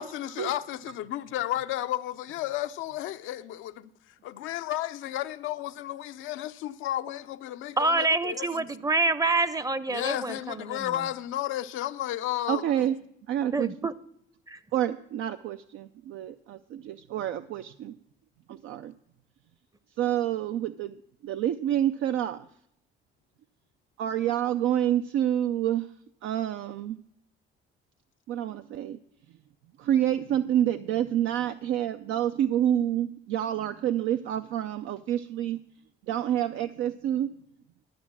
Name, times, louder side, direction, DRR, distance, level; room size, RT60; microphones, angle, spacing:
voice 1, 0.0-3.9 4.2-7.4 7.6-8.1 9.9-12.9, left 13 dB, 90° left, 0.5 m, -32 dB
voice 2, 7.8-11.0 13.5-13.9 14.5-14.6, right 3 dB, 15° right, 0.6 m, -27 dB
voice 3, 12.5-13.0 13.3-13.7 14.7-18.0 18.5-18.9 20.0-21.0 21.2-22.4 24.0-25.9 26.2-27.0 28.3-29.0 29.8-35.6 36.1-37.3, right 11 dB, 85° right, 0.4 m, -28 dB
12.0 x 6.2 x 7.3 m
cardioid pair, 90°, 20 cm